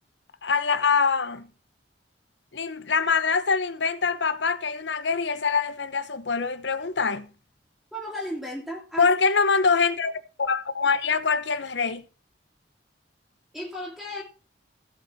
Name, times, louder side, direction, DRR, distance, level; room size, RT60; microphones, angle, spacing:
voice 1, 0.4-1.5 2.5-7.3 9.0-12.0, left 5 dB, 75° left, 1.0 m, -24 dB
voice 2, 7.9-9.1 13.5-14.2, equal, 5° right, 2.5 m, -34 dB
16.0 x 5.7 x 4.5 m
head